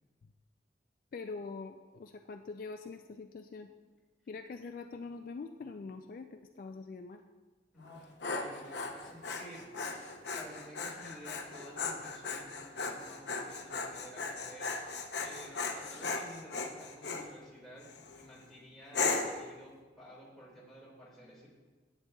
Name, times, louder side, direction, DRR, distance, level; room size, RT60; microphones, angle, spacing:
voice 1, 1.1-3.7 4.3-7.2, left 4 dB, 50° left, 6 dB, 0.3 m, -44 dB
voice 2, 7.7-9.9 10.3-14.9 15.2-17.9 18.2-21.5, equal, ahead, -6 dB, 1.9 m, -52 dB
Dog, 7.8-17.3 17.8-18.2 18.9-19.4, left 4 dB, 75° left, 0.7 m, -37 dB
9.8 x 8.1 x 2.3 m, 1.3 s
head